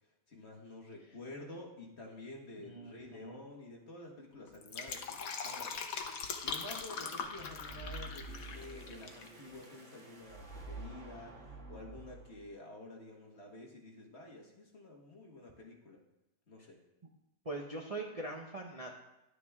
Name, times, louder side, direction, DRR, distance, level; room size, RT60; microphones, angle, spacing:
voice 1, 0.3-5.8 6.4-16.0 16.5-16.8, left 2 dB, 45° left, 0 dB, 1.8 m, -50 dB
voice 2, 2.6-3.4 17.4-19.0, right 2 dB, 30° right, 0 dB, 0.8 m, -42 dB
Fill (with liquid), 4.5-9.3 9.5-9.6, left 5 dB, 60° left, 1.3 m, -41 dB
sound 1, 7.3-12.6, right 2 dB, 50° right, 2.0 m, -49 dB
11.5 x 9.1 x 3.6 m, 0.90 s
omnidirectional pair, 1.7 m